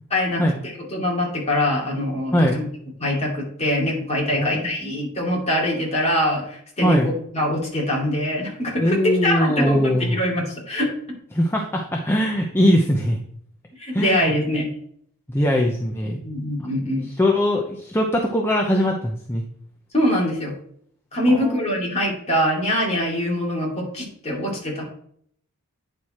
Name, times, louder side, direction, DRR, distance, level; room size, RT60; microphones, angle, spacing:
voice 1, 0.1-2.7 3.0-10.9 13.8-14.7 16.2-17.1 19.9-20.5 21.1-24.8, left 1 dB, 30° left, -3 dB, 2.5 m, -23 dB
voice 2, 4.3-4.9 6.8-7.1 8.8-10.2 11.3-13.2 13.9-14.3 15.3-16.2 17.2-19.4 21.3-21.6, equal, 10° left, 0 dB, 0.7 m, -21 dB
9.1 x 4.8 x 4.2 m, 0.65 s
head